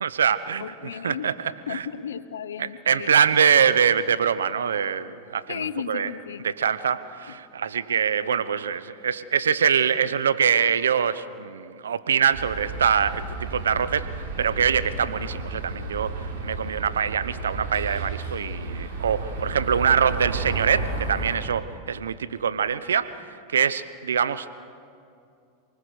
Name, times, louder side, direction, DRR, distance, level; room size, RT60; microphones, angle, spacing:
voice 1, 0.0-0.6 1.0-1.3 1.7-1.8 2.6-6.1 6.4-14.1 14.4-16.1 16.4-23.2 23.5-24.6, right 7 dB, 90° right, 14 dB, 0.9 m, -24 dB
voice 2, 0.6-1.3 1.7-3.1 5.5-6.5 7.3-7.4, left 8 dB, 85° left, 15 dB, 0.9 m, -34 dB
sound 1, 12.3-21.4, right 3 dB, 60° right, 7.2 m, -32 dB
28.5 x 19.5 x 6.5 m, 2.5 s
hypercardioid pair, 105°, 0 cm